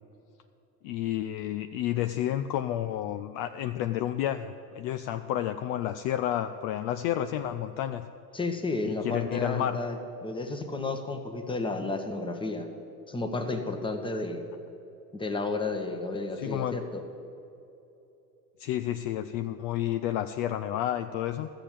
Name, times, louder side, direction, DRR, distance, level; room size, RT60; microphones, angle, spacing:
voice 1, 0.8-8.1 9.0-9.8 16.4-16.8 18.6-21.5, left 12 dB, 50° left, 9 dB, 0.5 m, -30 dB
voice 2, 8.3-10.0 10.2-12.7 13.1-14.4 15.1-17.0, left 3 dB, 10° left, 5 dB, 1.2 m, -32 dB
13.0 x 7.0 x 7.5 m, 3.0 s
hypercardioid pair, 95°, 50 cm